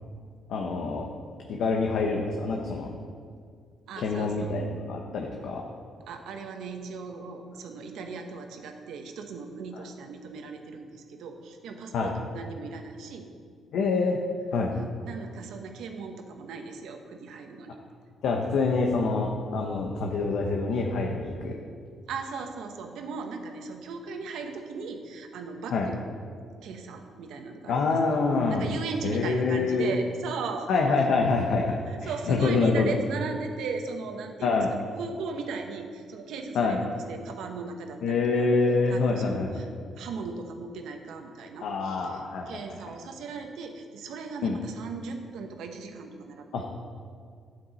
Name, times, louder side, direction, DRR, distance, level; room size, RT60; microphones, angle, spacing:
voice 1, 0.5-1.1 1.5-2.9 4.0-5.6 9.7-9.8 11.9-12.1 13.7-14.2 14.5-14.7 18.2-21.5 25.7-25.9 27.7-28.7 29.0-29.9 30.7-32.9 34.4-34.7 36.5-36.8 38.0-39.7 41.6-42.6 44.4-44.6 46.5-46.6, left 4 dB, 75° left, 1 dB, 1.0 m, -26 dB
voice 2, 3.9-4.5 6.1-13.3 14.7-17.7 22.1-26.0 26.6-28.2 28.5-30.7 31.9-34.6 35.0-38.5 38.9-39.7 40.0-46.6, right 4 dB, 80° right, 5 dB, 1.1 m, -38 dB
12.0 x 8.5 x 4.1 m, 2.2 s
cardioid pair, 90°, 0 cm